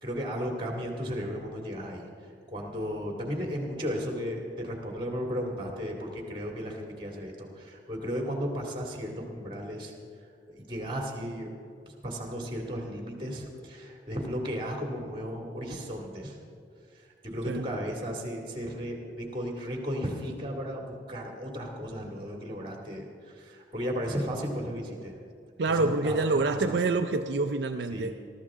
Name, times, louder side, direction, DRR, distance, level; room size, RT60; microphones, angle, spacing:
voice 1, 0.0-2.1 2.5-9.9 10.5-11.5 12.0-16.4 16.9-25.2 25.7-26.8 27.9-28.1, equal, 25° right, 0 dB, 2.3 m, -35 dB
voice 2, 25.6-28.1, right 3 dB, 70° right, 6 dB, 0.5 m, -27 dB
22.0 x 13.5 x 3.7 m, 2.4 s
head